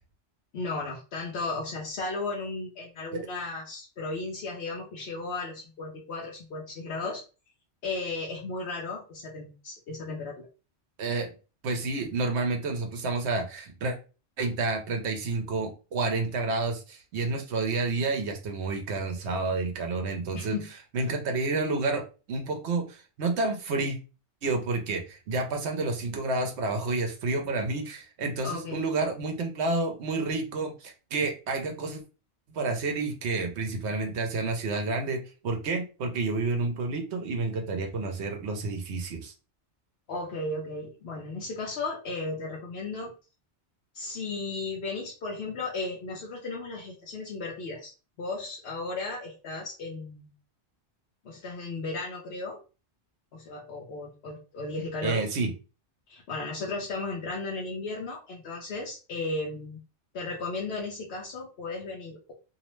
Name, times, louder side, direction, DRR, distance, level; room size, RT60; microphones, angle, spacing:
voice 1, 0.5-7.2 7.8-10.5 20.3-20.7 28.4-28.8 40.1-43.1 43.9-47.9 48.2-50.3 51.2-52.6 53.3-55.2 56.1-59.8 60.1-62.3, left 3 dB, 65° left, -3 dB, 0.9 m, -35 dB
voice 2, 11.0-11.3 11.6-14.0 14.4-20.6 20.9-22.0 22.3-24.0 24.4-32.0 32.5-39.3 55.0-55.5, right 3 dB, 75° right, 3 dB, 0.9 m, -29 dB
2.7 x 2.0 x 3.0 m, 0.32 s
omnidirectional pair, 1.2 m